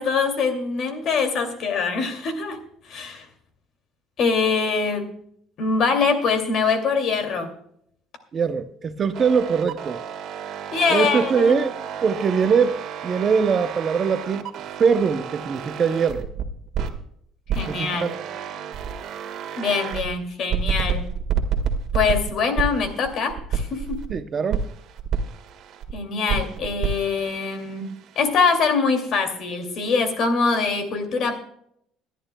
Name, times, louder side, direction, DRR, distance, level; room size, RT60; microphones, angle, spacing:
voice 1, 0.0-2.6 2.9-3.3 4.2-5.1 5.6-7.6 10.7-11.6 17.5-18.1 19.6-21.0 21.9-24.1 25.9-27.9 28.2-31.4, left 5 dB, 45° left, 6 dB, 2.5 m, -23 dB
voice 2, 8.3-10.0 10.9-11.7 12.0-14.5 14.8-16.3 17.7-18.1 24.1-24.6, right 6 dB, 30° right, 9 dB, 0.7 m, -22 dB
sound 1, 9.1-17.0 17.5-20.1 20.5-24.1 24.5-25.9 26.3-28.3, right 7 dB, 50° right, 1.7 m, -30 dB
26.0 x 11.0 x 2.2 m, 0.69 s
cardioid pair, 160°, 0 cm